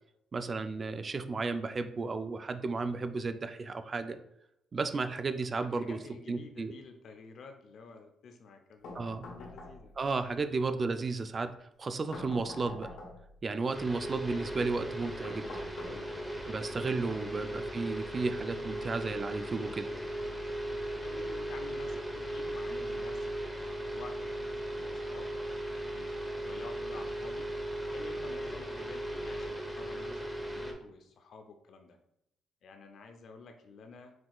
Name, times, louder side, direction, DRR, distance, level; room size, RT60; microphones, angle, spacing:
voice 1, 0.3-4.2 4.7-6.0 6.3-6.7 8.9-9.3 10.0-11.5 11.8-12.9 13.4-15.5 16.5-19.9, right 3 dB, 35° right, 9 dB, 0.3 m, -33 dB
voice 2, 5.4-9.9 21.0-25.3 25.9-27.5 27.9-32.0 32.6-34.1, left 4 dB, 65° left, 6 dB, 0.6 m, -51 dB
sound 1, 8.8-10.1 12.1-13.4 15.2-16.4, left 2 dB, 85° left, 1.1 m, -46 dB
sound 2, 13.7-30.7, right 1 dB, 5° right, 0.8 m, -37 dB
6.0 x 2.8 x 2.3 m, 0.78 s
cardioid pair, 90°, 0 cm